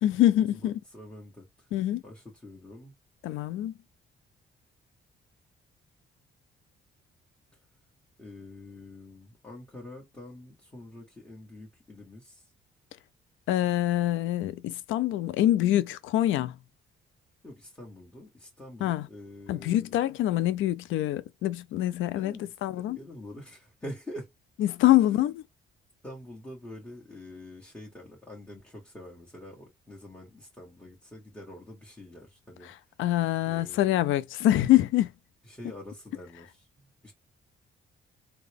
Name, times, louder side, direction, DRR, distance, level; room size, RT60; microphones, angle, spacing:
voice 1, 0.0-0.8 1.7-2.0 3.2-3.8 13.5-16.6 18.8-19.1 19.5-22.3 22.6-23.0 24.6-25.4 33.0-35.1, left 13 dB, 80° left, 0.4 m, -25 dB
voice 2, 0.5-1.7 2.0-3.0 8.2-12.5 17.4-19.9 22.1-24.3 25.1-25.3 26.0-32.7 33.5-34.0 35.4-37.1, left 1 dB, 10° left, 1.4 m, -46 dB
3.7 x 2.2 x 3.4 m
cardioid pair, 90°, 20 cm